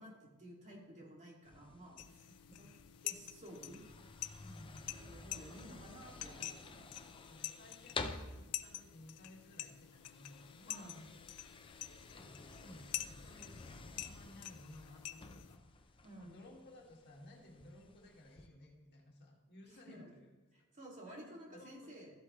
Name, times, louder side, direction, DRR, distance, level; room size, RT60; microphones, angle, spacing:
voice 1, 0.0-2.3 2.6-2.7 3.0-3.8 5.0-7.2 10.7-10.9 16.0-16.4 19.7-20.1 20.5-22.1, right 1 dB, 35° right, -2 dB, 2.3 m, -53 dB
sound 1, 1.4-18.5, left 3 dB, 25° left, 0.6 m, -52 dB
sound 2, 2.0-15.6, left 13 dB, 85° left, 0.5 m, -48 dB
voice 2, 2.4-2.7 4.4-4.8 7.1-11.1 11.7-20.3 21.0-22.1, left 1 dB, 50° left, -1 dB, 2.1 m, -58 dB
13.5 x 7.9 x 3.1 m, 1.2 s
head